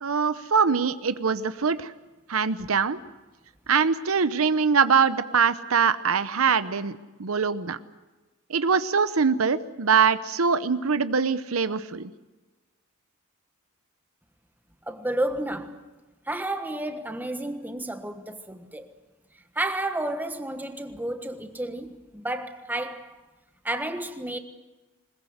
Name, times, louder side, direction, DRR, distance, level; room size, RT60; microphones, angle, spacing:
voice 1, 0.0-1.9 2.3-3.0 3.7-7.8 8.5-12.1, right 5 dB, 85° right, 0.9 m, -23 dB
voice 2, 14.9-15.8 16.3-18.9 19.5-23.2 23.6-24.4, right 1 dB, 10° right, 1.4 m, -31 dB
21.0 x 20.5 x 8.0 m
head